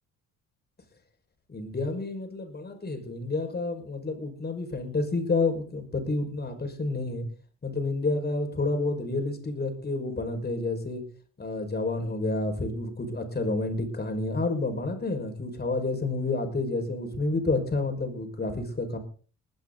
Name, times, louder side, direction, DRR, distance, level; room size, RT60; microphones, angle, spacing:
voice 1, 1.5-7.2 7.6-11.0 11.4-19.0, left 3 dB, 35° left, 5 dB, 5.9 m, -29 dB
21.0 x 12.0 x 4.1 m, 0.40 s
cardioid pair, 90°, 30 cm